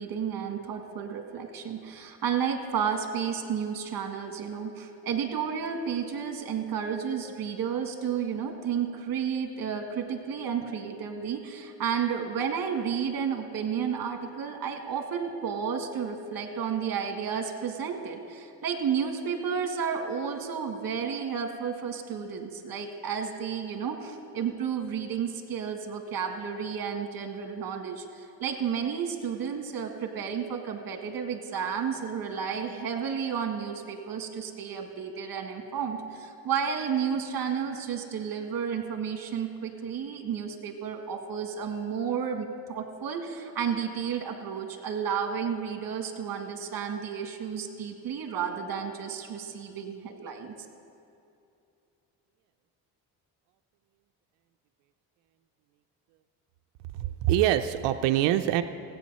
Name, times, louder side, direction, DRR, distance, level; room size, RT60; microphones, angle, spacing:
voice 1, 0.0-50.5, right 7 dB, 55° right, 4 dB, 1.7 m, -32 dB
voice 2, 56.9-58.6, right 12 dB, 90° right, 8 dB, 0.6 m, -24 dB
16.5 x 8.6 x 5.5 m, 2.6 s
cardioid pair, 85°, 41 cm